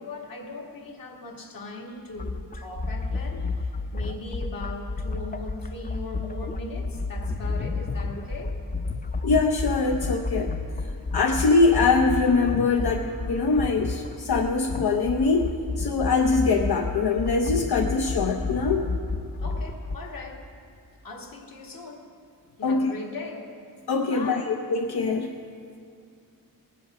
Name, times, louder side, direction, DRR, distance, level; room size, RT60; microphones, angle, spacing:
voice 1, 0.0-8.5 19.4-20.5 21.0-22.1 22.6-23.5 24.1-24.6, left 2 dB, 65° left, 0 dB, 1.7 m, -39 dB
sound 1, 2.2-20.0, left 3 dB, 25° left, 0.4 m, -31 dB
voice 2, 9.2-10.5 11.1-15.5 15.8-18.9 22.6-22.9 23.9-25.3, left 4 dB, 90° left, 2 dB, 0.7 m, -23 dB
18.5 x 8.5 x 5.9 m, 2.3 s
wide cardioid pair, 165°, 37 cm